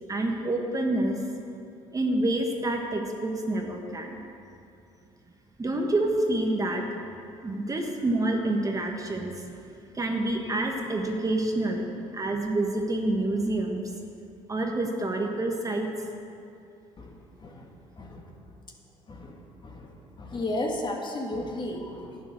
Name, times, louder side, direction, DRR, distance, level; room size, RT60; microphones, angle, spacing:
voice 1, 0.1-1.2 1.9-4.1 5.6-6.8 7.4-9.4 9.9-13.8 14.5-15.9, right 2 dB, 25° right, 2 dB, 1.4 m, -27 dB
voice 2, 20.2-22.2, left 1 dB, 35° left, 1 dB, 2.0 m, -33 dB
11.0 x 9.1 x 6.3 m, 2.7 s
supercardioid pair, 85°, 14 cm